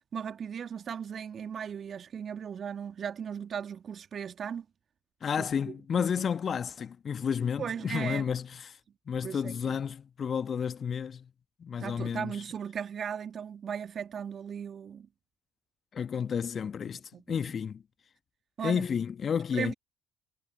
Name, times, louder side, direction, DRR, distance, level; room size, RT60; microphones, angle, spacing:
voice 1, 0.1-4.6 5.4-6.1 7.6-8.3 9.2-9.8 11.8-15.1 17.1-17.4 18.6-18.9 19.5-19.7, right 7 dB, 40° right, 1.7 m, -37 dB
voice 2, 5.2-8.8 9.1-11.3 11.6-12.4 15.9-17.0 17.3-17.8 18.6-19.7, left 7 dB, 40° left, 1.4 m, -31 dB
figure-of-eight pair, 55°, 0 cm